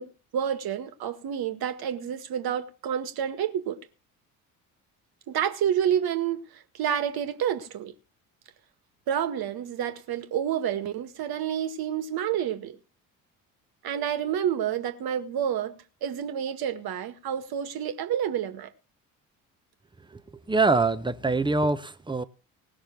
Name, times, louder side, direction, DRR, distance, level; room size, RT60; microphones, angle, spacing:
voice 1, 0.0-3.8 5.3-7.9 9.1-12.8 13.8-18.7, right 9 dB, 55° right, 2.0 m, -29 dB
voice 2, 20.5-22.2, right 3 dB, 10° right, 1.2 m, -24 dB
19.0 x 6.5 x 6.0 m
hypercardioid pair, 55°, 44 cm